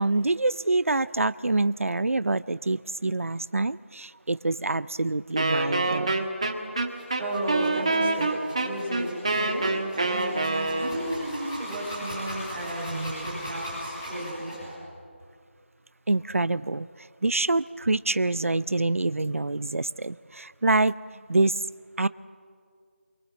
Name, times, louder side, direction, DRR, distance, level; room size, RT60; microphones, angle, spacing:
voice 1, 0.0-6.1 16.1-16.9 17.2-20.9 21.3-21.5 22.0-22.1, right 2 dB, 85° right, 17 dB, 0.6 m, -26 dB
Wind instrument woodwind instrument, 5.4-11.2, right 2 dB, 25° right, 1.6 m, -26 dB
sound 1, 6.9-14.7, equal, 15° left, 7.9 m, -39 dB
voice 2, 7.2-8.3 8.6-9.7 10.0-14.6, right 1 dB, 5° right, -11 dB, 4.1 m, -33 dB
26.5 x 24.0 x 7.5 m, 2.2 s
figure-of-eight pair, 180°, 7 cm